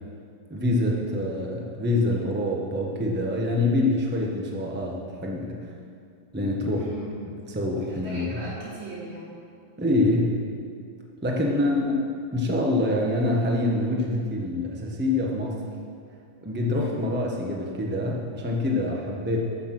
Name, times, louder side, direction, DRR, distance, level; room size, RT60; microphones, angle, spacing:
voice 1, 0.5-5.6 6.3-6.8 7.5-8.3 9.8-10.3 11.2-12.0 12.3-15.6 16.4-19.4, left 1 dB, 5° right, -1 dB, 0.9 m, -25 dB
voice 2, 6.7-7.2 7.9-9.3 11.5-11.8, right 2 dB, 85° right, -8 dB, 4.3 m, -39 dB
13.5 x 6.7 x 6.1 m, 2.3 s
omnidirectional pair, 2.2 m